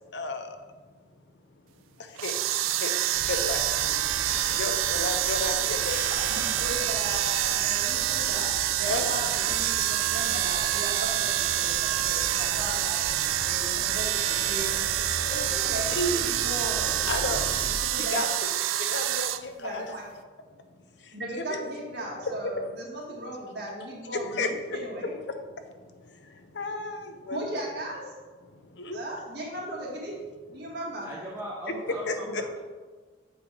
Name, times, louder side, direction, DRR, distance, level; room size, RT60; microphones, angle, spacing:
voice 1, 0.1-0.6 2.0-6.0 6.8-6.9 8.8-9.1 15.2-15.3 15.9-16.4 17.1-17.4 17.7-18.3 18.8-19.9 21.0-21.7 22.2-22.7 24.1-24.8 25.3-27.6 28.5-29.0 32.1-32.6, left 2 dB, 60° left, 7 dB, 0.6 m, -33 dB
sound 1, 2.2-19.4, right 12 dB, 90° right, 0.3 m, -27 dB
sound 2, 3.1-17.7, equal, 35° left, 1.5 m, -40 dB
voice 2, 6.3-14.8 15.3-16.9 17.9-18.4 19.6-20.0 21.1-25.1 27.3-28.0 28.9-30.2 30.5-31.1, right 1 dB, 55° right, -4 dB, 1.8 m, -37 dB
voice 3, 31.0-32.6, right 1 dB, 10° right, -5 dB, 0.7 m, -38 dB
7.4 x 3.3 x 4.9 m, 1.4 s
head